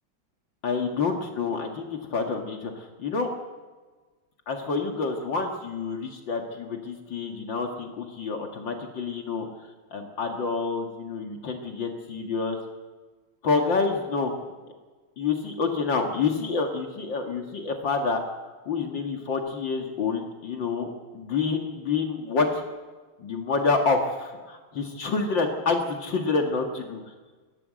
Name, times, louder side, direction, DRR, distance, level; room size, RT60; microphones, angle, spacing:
voice 1, 0.6-3.3 4.5-9.5 9.9-12.6 13.4-14.3 15.2-18.2 18.7-22.6 23.2-27.0, left 4 dB, 65° left, 3 dB, 2.6 m, -28 dB
23.0 x 17.0 x 7.7 m, 1.3 s
omnidirectional pair, 2.2 m